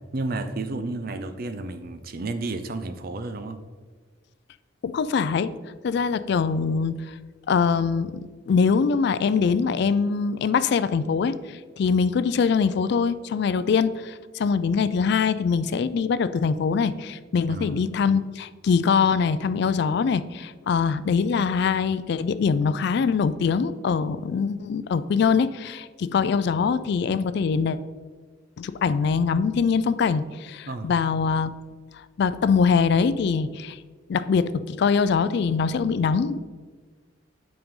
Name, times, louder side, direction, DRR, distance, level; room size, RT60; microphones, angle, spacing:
voice 1, 0.1-3.6 17.5-17.8 30.7-30.9, right 2 dB, 50° right, 9 dB, 0.5 m, -31 dB
voice 2, 4.8-5.5 5.8-7.1 7.5-27.8 28.6-31.5 32.2-33.8 34.1-36.4, left 5 dB, 60° left, 14 dB, 0.3 m, -23 dB
8.6 x 5.2 x 3.7 m, 1.5 s
head